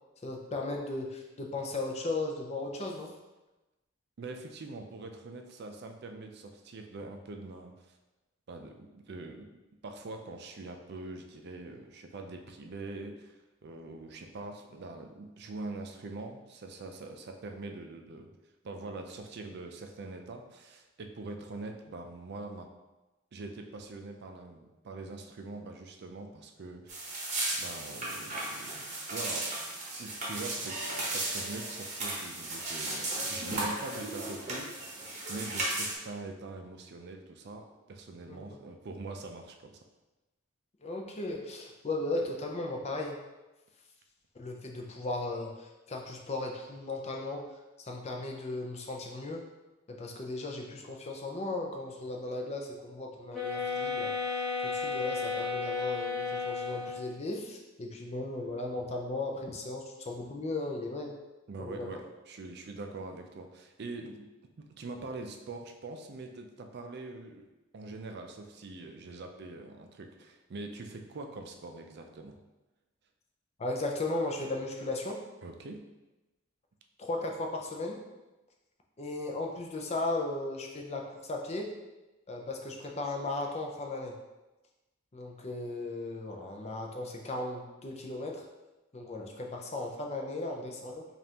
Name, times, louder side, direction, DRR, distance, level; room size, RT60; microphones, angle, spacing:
voice 1, 0.2-3.1 38.3-38.6 40.8-43.2 44.3-47.5 47.8-49.4 49.9-61.2 61.6-61.9 73.6-75.2 77.0-78.0 79.0-81.7 82.3-84.2 85.1-88.5 88.9-91.1, left 2 dB, 35° left, 1 dB, 0.5 m, -36 dB
voice 2, 4.2-8.0 8.5-13.4 13.6-18.3 18.6-22.7 23.3-27.3 27.6-29.5 30.0-39.8 61.5-64.3 64.6-67.4 67.7-72.4 75.4-75.9, right 3 dB, 55° right, 4 dB, 0.4 m, -43 dB
sound 1, 26.9-35.9, right 2 dB, 35° right, 0.9 m, -35 dB
sound 2, 53.3-57.2, left 4 dB, ahead, 0.9 m, -33 dB
5.2 x 2.5 x 2.8 m, 1.1 s
head